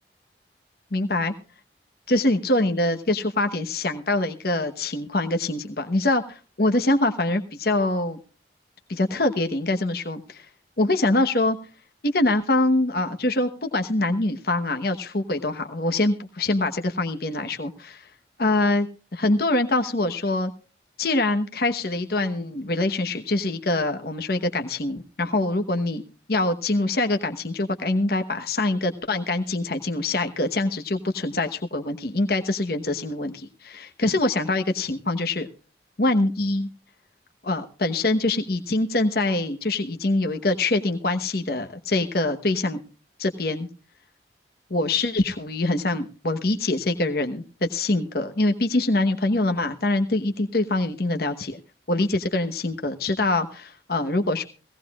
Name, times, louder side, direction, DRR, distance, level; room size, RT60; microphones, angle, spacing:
voice 1, 0.9-1.3 2.1-8.2 8.9-10.5 10.8-11.6 12.0-18.0 18.4-18.9 19.1-20.5 21.0-26.0 26.3-35.5 36.0-36.7 37.4-42.8 43.2-43.7 44.7-51.6 51.9-54.5, left 2 dB, 55° left, 7 dB, 1.1 m, -24 dB
18.5 x 17.0 x 2.4 m, 0.35 s
head